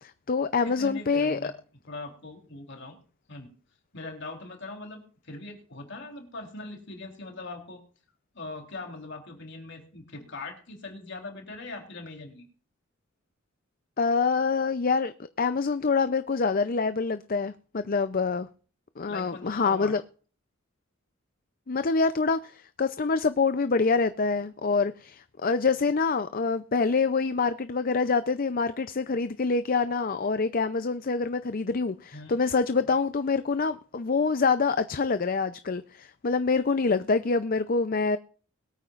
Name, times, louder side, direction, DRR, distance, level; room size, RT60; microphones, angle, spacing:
voice 1, 0.0-1.5 14.0-15.1 15.4-18.5 19.0-20.0 21.7-38.2, left 4 dB, 45° left, 0.5 m, -26 dB
voice 2, 0.6-1.5 1.9-3.0 3.3-3.5 3.9-7.8 8.3-12.5 19.0-19.9 32.1-32.4, left 2 dB, 60° left, 3.7 m, -41 dB
22.0 x 9.1 x 2.5 m
head